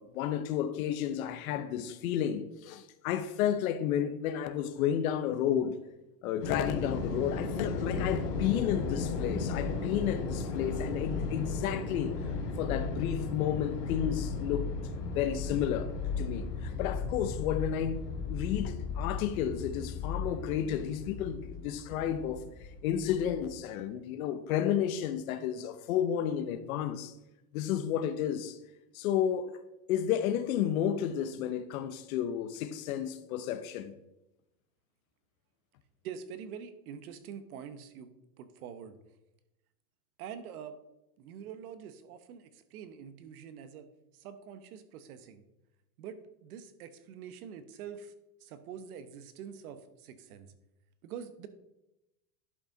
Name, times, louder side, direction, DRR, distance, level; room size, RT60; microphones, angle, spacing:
voice 1, 0.0-5.8 6.2-12.2 12.6-14.7 15.1-15.9 16.2-22.4 22.8-27.1 27.5-28.6 28.9-29.6 29.9-33.9, left 9 dB, 60° left, 0.8 m, -32 dB
sound 1, 6.4-23.5, left 4 dB, 85° left, 2.2 m, -35 dB
voice 2, 36.0-38.1 38.4-39.0 40.2-40.8 41.2-43.9 44.1-45.4 46.0-48.1 48.4-50.5 51.0-51.5, right 7 dB, 65° right, 1.0 m, -45 dB
11.0 x 4.9 x 3.9 m
supercardioid pair, 155°, 47 cm